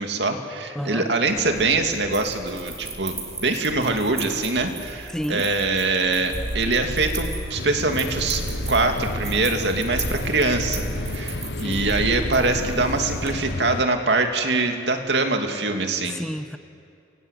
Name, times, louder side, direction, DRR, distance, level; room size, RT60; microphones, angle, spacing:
voice 1, 0.0-8.4 8.7-10.8 11.1-16.2, right 3 dB, 65° right, 5 dB, 2.7 m, -23 dB
voice 2, 0.8-1.1 5.1-5.5 11.6-11.9 16.1-16.6, equal, 5° left, 10 dB, 0.6 m, -30 dB
sound 1, 1.3-13.3, right 3 dB, 15° right, 4.8 m, -38 dB
sound 2, 6.3-13.6, right 1 dB, 90° right, 3.1 m, -32 dB
sound 3, 7.6-13.8, left 3 dB, 65° left, 0.8 m, -33 dB
29.5 x 23.5 x 8.4 m, 2.5 s
head